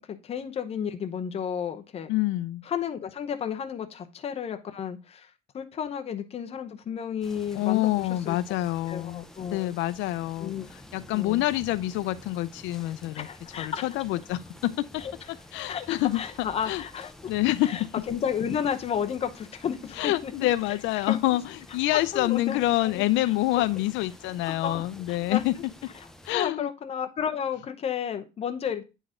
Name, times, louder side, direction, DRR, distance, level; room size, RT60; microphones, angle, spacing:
voice 1, 0.1-2.1 2.6-8.4 8.9-9.8 10.4-10.8 11.1-11.4 13.2-14.0 15.0-15.1 15.7-17.3 17.6-20.3 21.0-21.2 21.9-22.6 22.8-23.0 23.6-23.7 24.5-25.6 26.3-28.8, left 8 dB, 30° left, 0.8 m, -32 dB
voice 2, 2.1-2.6 7.6-10.5 10.9-13.3 13.6-15.0 15.3-16.2 16.7-16.8 17.3-17.9 20.0-25.6 26.2-26.7, left 16 dB, 85° left, 0.4 m, -27 dB
sound 1, 7.2-26.3, left 1 dB, 5° left, 0.5 m, -49 dB
9.1 x 3.9 x 3.6 m
cardioid pair, 165°, 19 cm